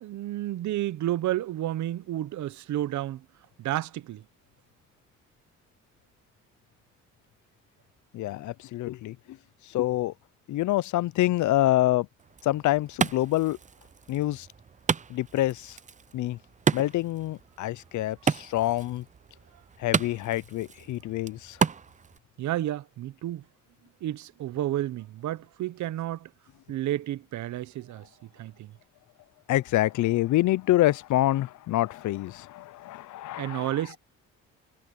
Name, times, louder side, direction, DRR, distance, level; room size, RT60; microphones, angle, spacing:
voice 1, 0.0-3.3 3.6-4.2 22.4-23.4 24.0-26.3 26.7-28.7 33.4-34.0, right 13 dB, 70° right, 0.8 m, -31 dB
voice 2, 8.1-9.4 9.6-10.1 10.5-12.1 12.4-13.6 14.1-14.5 15.1-15.8 16.1-16.4 16.7-19.0 19.8-21.6 29.5-33.7, left 15 dB, 75° left, 0.6 m, -26 dB
Wood, 12.2-22.2, right 6 dB, 25° right, 0.6 m, -33 dB
cardioid pair, 90°, 30 cm